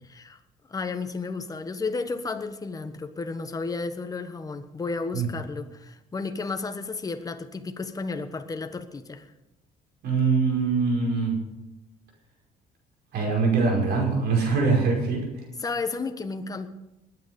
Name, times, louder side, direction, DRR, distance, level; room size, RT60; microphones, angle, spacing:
voice 1, 0.0-0.4 0.7-9.3 15.6-16.7, left 4 dB, 20° left, 8 dB, 1.2 m, -32 dB
voice 2, 10.0-11.4 13.1-15.5, right 4 dB, 75° right, 0 dB, 5.3 m, -23 dB
20.0 x 9.3 x 5.3 m, 0.96 s
cardioid pair, 110°, 17 cm